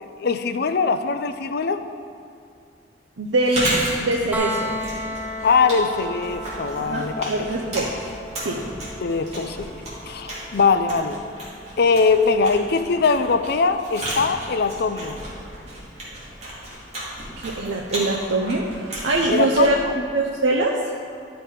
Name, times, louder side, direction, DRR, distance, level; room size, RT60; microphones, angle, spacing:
voice 1, 0.0-1.8 5.4-7.5 9.0-9.7 10.1-11.2 11.8-15.2 19.3-19.9, left 4 dB, 60° left, 9 dB, 0.5 m, -21 dB
voice 2, 3.2-4.8 6.8-7.9 8.4-8.6 17.4-18.6 19.0-19.8 20.1-20.7, right 2 dB, 85° right, -1 dB, 0.7 m, -23 dB
Chewing mastication, 3.3-20.2, right 1 dB, 35° right, 2.6 m, -33 dB
sound 1, 4.3-16.1 18.1-18.2, equal, 10° right, 0.9 m, -36 dB
11.5 x 5.9 x 5.0 m, 2.4 s
head